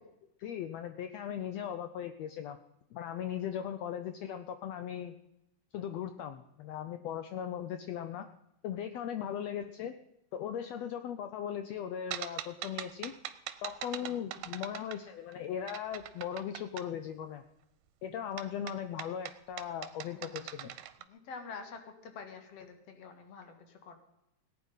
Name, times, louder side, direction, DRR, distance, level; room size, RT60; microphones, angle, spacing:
voice 1, 0.4-2.6 2.9-5.1 5.7-8.3 8.6-9.9 10.3-13.1 13.6-17.4 18.0-20.7, left 9 dB, 75° left, 10 dB, 1.6 m, -38 dB
sound 1, 12.1-15.3 15.7-16.9 18.4-21.0, right 12 dB, 90° right, 2.4 m, -42 dB
voice 2, 13.9-14.5 20.1-20.5 21.1-24.0, left 5 dB, 55° left, 6 dB, 2.6 m, -48 dB
17.5 x 9.7 x 5.5 m, 0.86 s
omnidirectional pair, 3.6 m